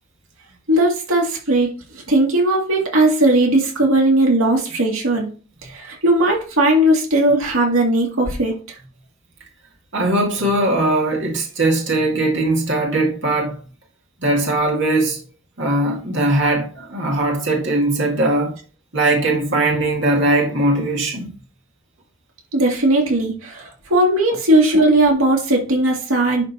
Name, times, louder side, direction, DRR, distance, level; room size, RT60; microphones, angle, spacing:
voice 1, 0.7-1.7 1.9-5.3 5.6-8.6 22.5-26.5, right 1 dB, 90° right, 2.1 m, -17 dB
voice 2, 9.9-13.5 14.2-15.2 15.6-18.5 18.9-21.3, right 2 dB, 60° right, 2.1 m, -19 dB
11.0 x 3.8 x 4.2 m
head